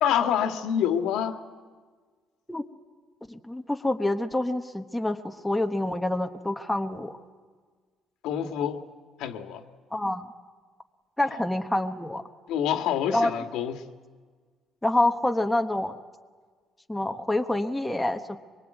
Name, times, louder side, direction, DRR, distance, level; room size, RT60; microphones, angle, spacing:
voice 1, 0.0-1.4 8.2-8.9 9.2-9.6 12.5-13.9, left 9 dB, 75° left, 1.8 m, -27 dB
voice 2, 3.3-7.1 9.9-10.3 11.2-12.2 13.1-13.3 14.8-16.0 16.9-18.4, left 1 dB, 5° left, 1.1 m, -27 dB
24.5 x 23.5 x 9.1 m
cardioid pair, 160°, 0 cm